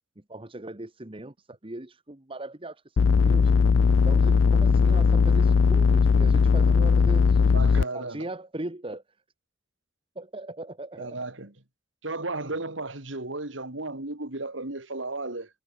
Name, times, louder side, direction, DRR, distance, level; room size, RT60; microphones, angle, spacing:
voice 1, 0.3-3.5 4.0-9.0 10.1-11.2, right 1 dB, 30° right, 1.4 m, -39 dB
sound 1, 3.0-7.8, left 5 dB, 75° left, 0.4 m, -19 dB
voice 2, 7.5-8.2 11.0-11.5 12.0-15.5, right 2 dB, 75° right, 2.9 m, -34 dB
head